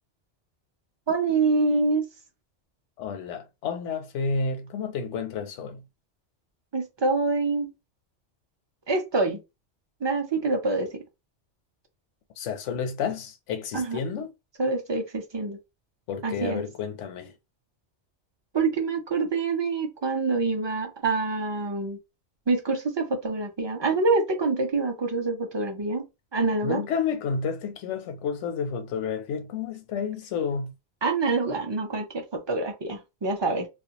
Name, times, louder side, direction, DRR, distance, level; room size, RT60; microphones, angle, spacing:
voice 1, 1.1-2.0 6.7-7.7 8.9-9.4 10.0-11.0 13.7-14.0 14.6-15.6 16.2-16.6 18.5-22.0 22.5-26.1 26.3-26.8 31.0-33.7, right 3 dB, 35° right, 0.4 m, -26 dB
voice 2, 3.0-5.8 12.4-14.3 16.1-17.3 26.6-30.7, left 5 dB, 85° left, 0.9 m, -30 dB
2.4 x 2.2 x 2.8 m
omnidirectional pair, 1.2 m